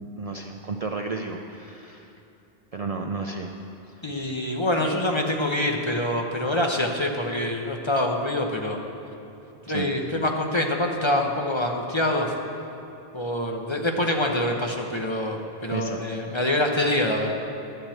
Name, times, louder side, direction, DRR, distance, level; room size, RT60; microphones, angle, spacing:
voice 1, 0.2-2.1 2.7-3.5 9.7-9.9 15.7-16.0, right 4 dB, 45° right, 3 dB, 0.5 m, -32 dB
voice 2, 4.0-8.8 9.7-12.3 13.1-17.4, left 1 dB, 30° left, 2 dB, 0.9 m, -25 dB
11.5 x 7.4 x 7.8 m, 2.9 s
omnidirectional pair, 1.1 m